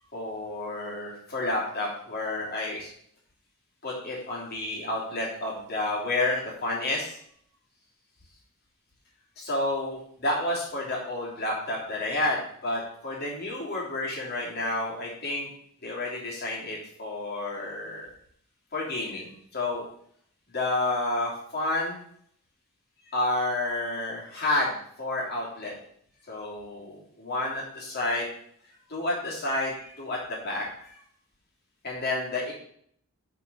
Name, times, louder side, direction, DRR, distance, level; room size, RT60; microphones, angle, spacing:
voice 1, 0.1-2.9 3.8-7.1 9.4-15.5 15.8-18.1 18.7-19.8 20.5-22.0 23.1-25.7 26.3-28.3 28.9-31.0 31.8-32.5, left 2 dB, 45° left, -3 dB, 3.0 m, -30 dB
7.2 x 5.4 x 5.4 m, 0.65 s
head